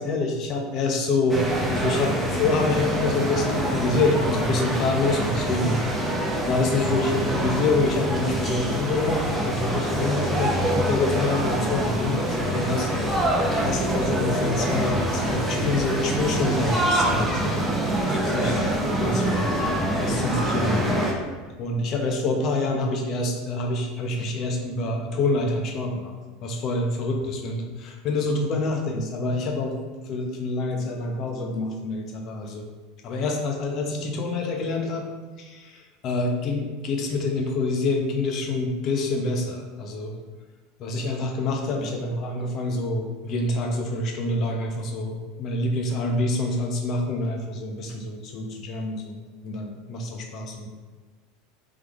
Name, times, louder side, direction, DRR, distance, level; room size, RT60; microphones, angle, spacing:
voice 1, 0.0-1.4 1.7-5.8 6.4-13.3 13.6-17.8 18.0-20.9 21.6-26.1 26.4-27.6 28.0-29.8 30.1-32.7 33.0-35.1 35.4-40.2 40.8-49.2 49.4-50.7, left 2 dB, 50° left, 2 dB, 0.8 m, -26 dB
sound 1, 1.3-21.1, right 1 dB, 10° right, 0.8 m, -25 dB
3.6 x 3.3 x 3.5 m, 1.3 s
hypercardioid pair, 105°, 0 cm